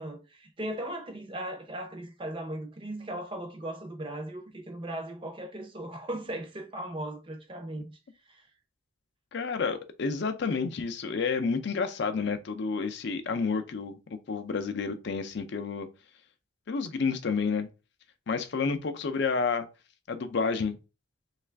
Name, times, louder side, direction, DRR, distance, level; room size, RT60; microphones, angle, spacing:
voice 1, 0.0-8.0 8.3-8.5, right 1 dB, 25° right, 0.6 m, -38 dB
voice 2, 9.3-14.0 14.3-15.9 16.7-17.7 18.3-19.7 20.1-20.8, left 5 dB, 55° left, 0.4 m, -30 dB
3.2 x 2.4 x 3.2 m
head